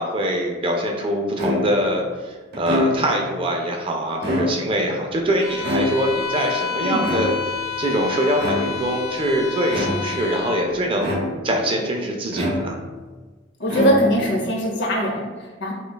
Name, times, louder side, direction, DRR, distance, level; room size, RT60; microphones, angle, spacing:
voice 1, 0.0-12.8, right 1 dB, 25° right, 1 dB, 0.3 m, -23 dB
sound 1, 1.4-1.9 2.5-3.3 4.1-4.9 5.6-6.3 7.0-7.7 8.4-8.9 9.7-10.3 11.0-11.6 12.3-13.0 13.6-14.4, left 1 dB, 50° right, 0.8 m, -26 dB
Bowed string instrument, 5.4-10.7, left 6 dB, 40° left, 1.1 m, -30 dB
voice 2, 6.8-7.1 13.6-15.7, equal, 55° left, -1 dB, 0.7 m, -21 dB
5.0 x 2.3 x 2.2 m, 1.3 s
head